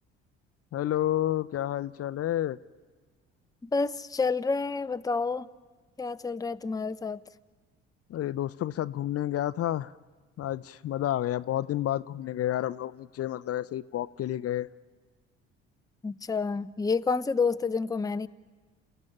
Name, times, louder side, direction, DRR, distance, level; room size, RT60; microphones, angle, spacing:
voice 1, 0.7-2.6 8.1-9.9 10.4-14.7, left 12 dB, 50° left, 0.6 m, -30 dB
voice 2, 3.6-5.5 6.0-7.2 16.0-18.3, left 4 dB, 10° left, 0.7 m, -29 dB
28.5 x 15.0 x 10.0 m
hypercardioid pair, 55°, 31 cm